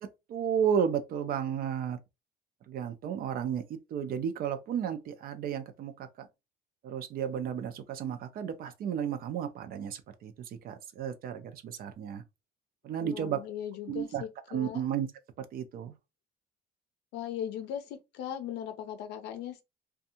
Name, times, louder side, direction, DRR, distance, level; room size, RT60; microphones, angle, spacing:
voice 1, 0.0-2.0 2.7-6.3 6.8-12.2 12.8-13.4 13.9-15.1 15.4-16.0, right 8 dB, 60° right, 0.5 m, -33 dB
voice 2, 13.0-14.8 17.1-19.6, left 10 dB, 85° left, 0.5 m, -38 dB
2.6 x 2.3 x 2.7 m
cardioid pair, 110°, 17 cm